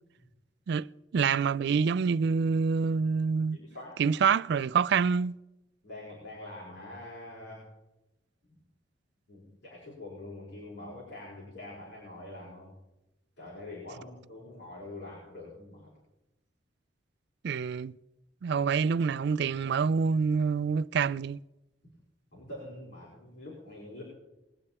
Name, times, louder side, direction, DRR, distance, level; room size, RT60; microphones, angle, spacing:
voice 1, 1.1-3.6 4.0-5.3 17.4-17.9 18.4-21.4, right 5 dB, 65° right, 0.4 m, -26 dB
voice 2, 3.5-4.0 5.8-7.7 8.5-8.6 9.3-12.7 13.4-15.9 22.3-24.0, left 2 dB, 80° left, 4.9 m, -45 dB
21.5 x 8.7 x 4.3 m
head